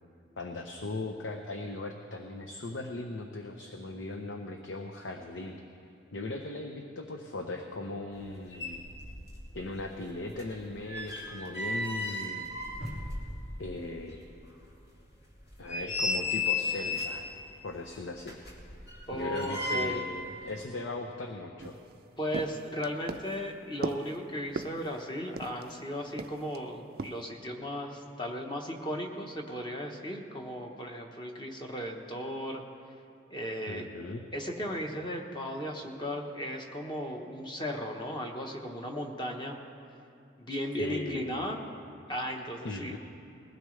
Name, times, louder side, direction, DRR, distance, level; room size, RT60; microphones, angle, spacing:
voice 1, 0.4-5.6 6.1-8.8 9.5-12.5 13.6-14.2 15.6-17.2 17.6-18.4 19.1-21.7 33.7-34.2 40.8-41.5 42.6-43.0, left 2 dB, 80° left, 4 dB, 0.8 m, -38 dB
sound 1, 8.2-8.3 8.5-9.5 9.8-13.7 14.1-14.2 14.7-14.8 15.4-17.3 18.2-20.2 20.5-20.6, left 3 dB, 55° left, 2.7 m, -34 dB
voice 2, 19.1-20.0 22.2-32.6 33.3-33.9 34.3-39.6 40.4-41.7 42.1-43.0, equal, 25° left, 2 dB, 1.1 m, -36 dB
sound 2, 21.6-25.8 26.2-26.6 27.0-27.2, right 3 dB, 50° right, 0.4 m, -39 dB
20.5 x 16.0 x 3.3 m, 2.6 s
head